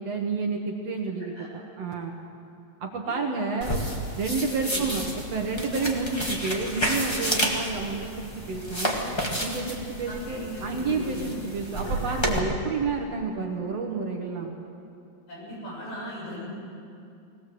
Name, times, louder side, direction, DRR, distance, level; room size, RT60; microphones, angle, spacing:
voice 1, 0.0-1.3 1.8-2.1 2.8-3.7 4.2-5.0 5.3-9.0 9.4-14.5, right 4 dB, 60° right, 2 dB, 2.1 m, -30 dB
sound 1, 3.6-12.4, equal, 15° left, 1.1 m, -31 dB
voice 2, 10.1-11.3 15.3-16.4, left 1 dB, 75° left, -5 dB, 9.0 m, -38 dB
21.0 x 18.0 x 7.7 m, 2.6 s
omnidirectional pair, 4.0 m